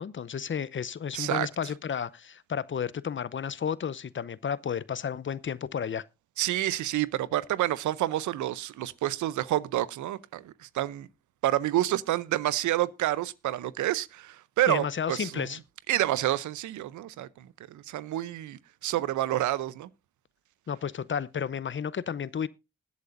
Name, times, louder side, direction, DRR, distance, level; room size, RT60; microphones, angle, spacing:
voice 1, 0.0-6.0 14.7-15.6 20.7-22.5, left 7 dB, 40° left, 0.7 m, -32 dB
voice 2, 1.1-1.5 6.4-11.1 11.4-15.5 15.9-19.9, right 14 dB, 85° right, 0.6 m, -29 dB
20.5 x 8.2 x 2.6 m
supercardioid pair, 50°, 29 cm